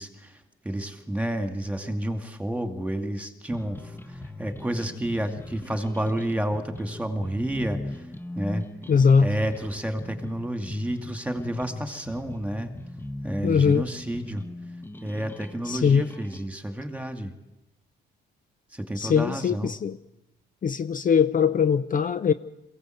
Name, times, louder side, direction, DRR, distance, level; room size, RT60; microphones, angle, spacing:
voice 1, 0.0-8.1 8.4-8.6 9.2-12.7 13.2-14.4 15.0-17.3 18.7-19.7, right 1 dB, 5° right, 6 dB, 2.4 m, -30 dB
sound 1, 3.5-16.5, left 2 dB, 10° left, 1.1 m, -39 dB
voice 2, 8.9-9.3 13.4-13.8 15.7-16.0 19.0-20.0 20.6-22.3, left 6 dB, 45° left, 12 dB, 0.7 m, -21 dB
22.0 x 16.5 x 7.9 m, 0.94 s
cardioid pair, 90°, 20 cm